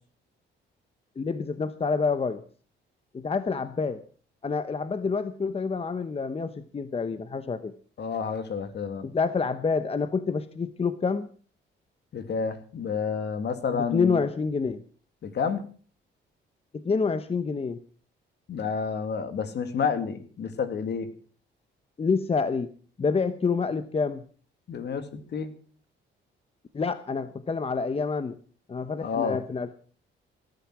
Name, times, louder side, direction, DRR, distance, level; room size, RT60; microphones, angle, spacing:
voice 1, 1.2-2.4 3.1-4.0 4.4-7.7 9.0-11.3 13.7-14.8 16.7-17.8 22.0-22.7 23.0-24.2 26.7-28.4 28.7-29.7, left 5 dB, 30° left, 12 dB, 1.0 m, -27 dB
voice 2, 8.0-9.1 12.1-14.2 15.2-15.6 18.5-21.1 24.7-25.5 29.0-29.4, left 6 dB, 60° left, 9 dB, 2.4 m, -30 dB
18.0 x 10.5 x 6.2 m, 0.43 s
cardioid pair, 90°, 20 cm